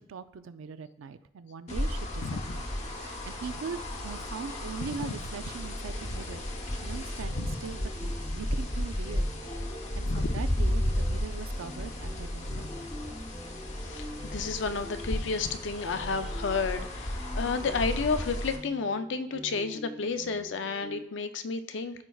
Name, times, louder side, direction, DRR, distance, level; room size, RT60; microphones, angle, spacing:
voice 1, 0.1-6.4 6.8-9.3 10.0-12.9, right 5 dB, 80° right, 12 dB, 0.4 m, -41 dB
sound 1, 1.7-18.6, left 1 dB, 35° left, 0.8 m, -33 dB
sound 2, 7.3-21.0, equal, ahead, 0.4 m, -46 dB
voice 2, 13.8-22.0, left 4 dB, 65° left, 9 dB, 0.5 m, -31 dB
13.5 x 4.5 x 2.3 m, 0.93 s
head